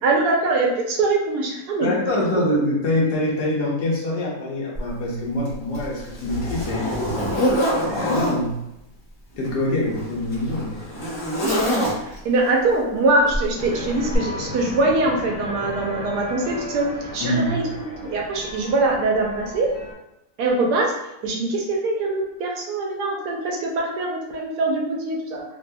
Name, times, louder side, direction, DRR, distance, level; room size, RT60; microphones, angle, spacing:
voice 1, 0.0-2.0 11.4-17.6 18.0-19.7 20.4-20.9 21.2-25.4, right 2 dB, 75° right, -1 dB, 1.2 m, -23 dB
voice 2, 1.8-7.0 7.8-8.6 9.4-11.0 17.2-17.7, left 1 dB, 75° left, -4 dB, 1.4 m, -24 dB
Zipper (clothing), 4.7-4.9 5.4-8.4 9.3-12.3 13.3-13.5 14.1-14.2, equal, 25° left, 0.6 m, -25 dB
sound 1, 13.6-19.9, left 1 dB, 50° left, 1.0 m, -35 dB
3.3 x 2.7 x 2.2 m, 0.88 s
omnidirectional pair, 1.8 m